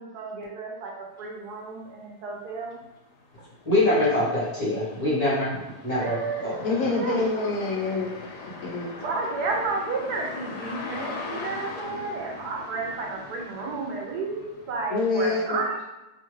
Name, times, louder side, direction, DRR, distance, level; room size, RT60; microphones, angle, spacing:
voice 1, 0.0-2.8 4.0-4.2 6.0-7.4 7.8-7.9 9.0-15.8, right 3 dB, 80° right, 0 dB, 1.2 m, -32 dB
sound 1, 1.8-1.9 2.4-15.3, left 4 dB, 85° left, 1.2 m, -41 dB
voice 2, 3.7-6.1 6.4-6.9, left 1 dB, 30° left, -9 dB, 0.7 m, -24 dB
voice 3, 6.6-8.9 14.9-15.6, left 3 dB, 70° left, -2 dB, 0.9 m, -27 dB
3.0 x 2.3 x 3.0 m, 1.0 s
omnidirectional pair, 1.7 m